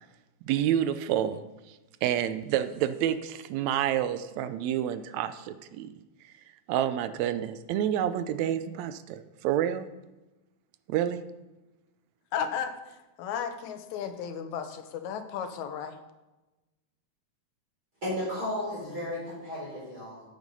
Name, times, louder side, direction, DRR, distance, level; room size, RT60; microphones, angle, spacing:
voice 1, 0.5-1.4 2.0-5.9 6.7-9.9 10.9-11.2, right 10 dB, 80° right, 12 dB, 1.8 m, -28 dB
voice 2, 12.3-12.7 13.2-16.0, left 7 dB, 85° left, 9 dB, 2.2 m, -34 dB
voice 3, 18.0-20.2, left 1 dB, 30° right, -8 dB, 4.4 m, -34 dB
9.3 x 8.1 x 5.4 m, 1.1 s
omnidirectional pair, 3.3 m